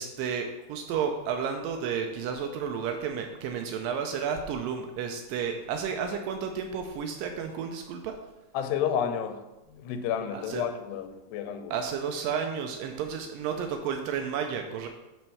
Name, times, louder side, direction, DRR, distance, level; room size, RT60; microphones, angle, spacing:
voice 1, 0.0-8.2 10.3-10.7 11.7-14.9, right 7 dB, 90° right, 4 dB, 2.0 m, -32 dB
voice 2, 8.5-9.4 9.7-11.8, left 8 dB, 85° left, 7 dB, 2.8 m, -31 dB
7.7 x 4.3 x 6.9 m, 1.0 s
omnidirectional pair, 4.6 m